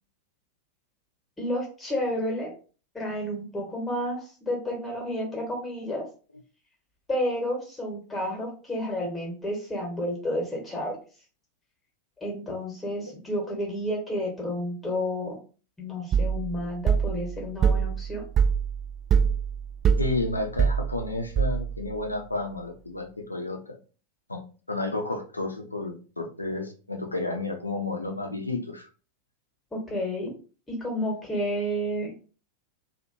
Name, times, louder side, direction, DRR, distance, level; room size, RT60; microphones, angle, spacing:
voice 1, 1.4-2.5 2.9-6.1 7.1-11.0 12.2-15.4 15.8-18.2 29.7-30.3 30.7-32.3, equal, 10° left, 0 dB, 1.3 m, -31 dB
sound 1, 16.1-21.9, right 7 dB, 30° right, 0.3 m, -25 dB
voice 2, 20.0-23.8 24.3-24.4 24.7-28.9, left 2 dB, 80° left, 4 dB, 0.6 m, -31 dB
3.0 x 2.5 x 2.7 m, 0.36 s
figure-of-eight pair, 90°, 0 cm